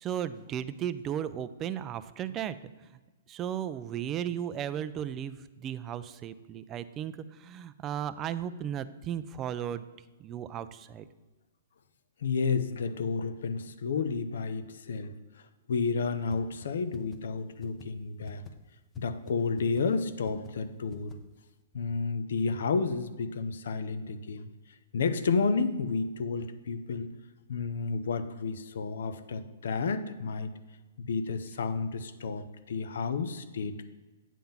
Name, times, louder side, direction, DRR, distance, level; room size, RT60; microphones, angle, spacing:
voice 1, 0.0-3.0 3.3-9.8 10.2-11.1, right 9 dB, 20° right, 13 dB, 0.3 m, -35 dB
voice 2, 12.2-15.1 15.7-18.4 19.0-21.2 21.7-24.5 24.9-27.1 27.5-30.5 31.0-33.9, left 4 dB, 70° left, 11 dB, 0.7 m, -31 dB
sound 1, 16.3-16.4 16.6-16.7 16.9-17.2 17.6-17.9 18.3-18.5 18.9-19.0 19.3-19.4 19.6-19.8 20.3-20.5 20.9-21.1, left 5 dB, 15° left, 0.7 m, -46 dB
9.2 x 3.8 x 7.1 m, 1.2 s
hypercardioid pair, 160°, 0 cm